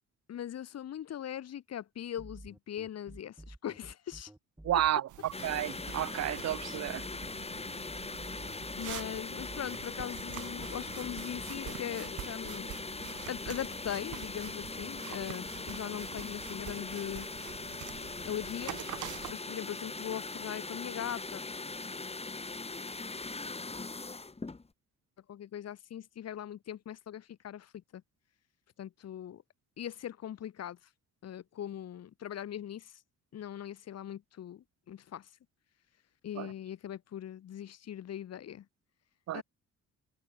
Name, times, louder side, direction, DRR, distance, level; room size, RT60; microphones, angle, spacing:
voice 1, 0.3-4.3 8.8-12.7 13.3-17.3 17.9-18.8 19.3-21.4 25.3-28.0 28.8-29.4 29.8-30.8 31.2-33.0 33.3-35.3 36.2-38.7 39.3-39.4, left 10 dB, 55° left, 1.3 m, -40 dB
sound 1, 2.2-11.6, right 1 dB, 5° right, 2.3 m, -50 dB
voice 2, 4.6-7.0 36.4-36.5 39.3-39.4, right 12 dB, 60° right, 0.8 m, -31 dB
sound 2, 5.1-19.3, right 14 dB, 80° right, 1.6 m, -47 dB
sound 3, 5.3-24.7, left 3 dB, 20° left, 2.7 m, -41 dB
cardioid pair, 90°, 30 cm